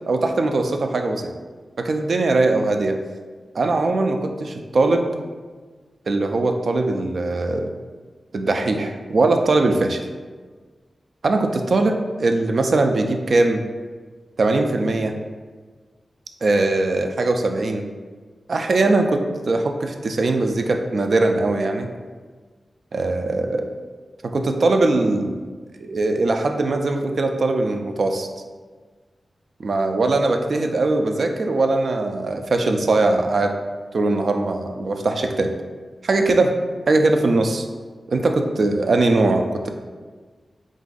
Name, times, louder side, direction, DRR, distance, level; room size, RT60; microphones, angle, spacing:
voice 1, 0.1-1.3 1.8-3.0 3.5-5.1 6.1-7.7 8.3-10.0 11.2-13.6 14.4-15.1 16.4-17.9 18.5-21.9 22.9-23.7 24.2-25.4 25.8-28.3 29.6-33.5 33.9-35.5 36.0-36.5 36.9-37.7 38.1-39.7, right 2 dB, 65° right, 5 dB, 0.4 m, -20 dB
3.9 x 2.5 x 3.8 m, 1.4 s
wide cardioid pair, 90°, 0 cm